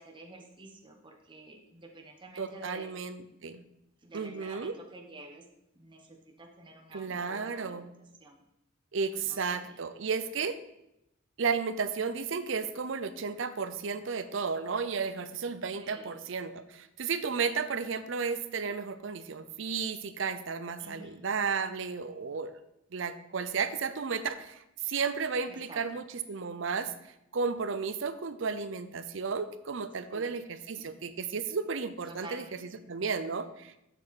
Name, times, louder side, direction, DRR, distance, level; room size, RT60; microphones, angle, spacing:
voice 1, 0.0-2.9 4.0-5.4 5.7-7.8 8.2-8.4 9.3-9.7 15.8-16.2 20.8-21.3 25.5-25.8 30.1-30.4 30.8-31.0 32.1-32.5 32.8-32.9, right 2 dB, 25° right, 2 dB, 1.0 m, -49 dB
voice 2, 2.4-3.6 4.1-4.7 6.9-7.9 8.9-10.6 11.4-22.5 22.9-26.9 27.3-33.8, right 5 dB, 65° right, 12 dB, 0.6 m, -33 dB
7.3 x 6.7 x 4.1 m, 0.85 s
head